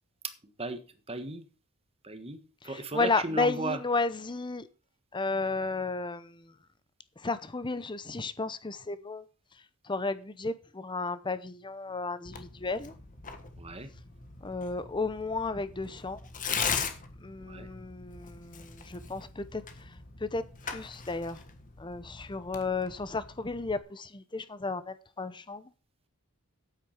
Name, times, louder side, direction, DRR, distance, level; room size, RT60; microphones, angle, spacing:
voice 1, 1.1-1.4 2.0-3.8 13.6-13.9 17.5-17.7, right 2 dB, 25° right, 1.4 m, -35 dB
voice 2, 2.6-4.7 5.1-6.5 7.2-9.2 9.8-12.9 14.4-16.2 17.2-19.9 20.2-21.4 21.8-25.7, left 3 dB, 20° left, 0.7 m, -33 dB
Tearing, 12.2-23.8, left 6 dB, 35° left, 1.4 m, -40 dB
9.1 x 8.4 x 5.8 m
head